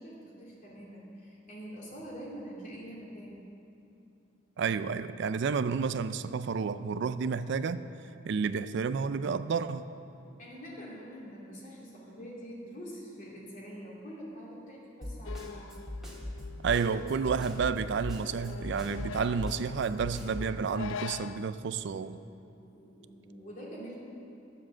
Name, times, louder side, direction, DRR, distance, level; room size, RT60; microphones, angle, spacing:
voice 1, 0.0-3.4 10.4-15.7 22.6-23.9, equal, 45° left, 2.8 m, -45 dB
voice 2, 4.6-7.8 8.2-9.9 16.6-22.2, right 5 dB, 65° right, 0.4 m, -30 dB
Snare drum, 15.0-20.5, left 1 dB, 5° right, 1.8 m, -39 dB
sound 1, 15.2-21.6, left 7 dB, 85° left, 0.3 m, -45 dB
12.0 x 7.5 x 7.3 m
head